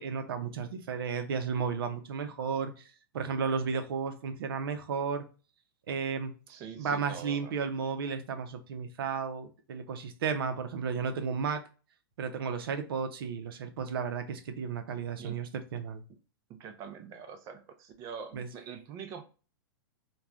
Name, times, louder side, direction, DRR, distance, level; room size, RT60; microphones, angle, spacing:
voice 1, 0.0-2.7 3.1-5.2 5.9-6.3 6.8-11.6 12.2-16.0 18.3-18.5, right 6 dB, 70° right, 0.6 m, -33 dB
voice 2, 6.5-7.6 15.2-15.4 16.6-19.2, right 7 dB, 30° right, 0.4 m, -44 dB
3.1 x 2.2 x 2.4 m
hypercardioid pair, 140°, 12 cm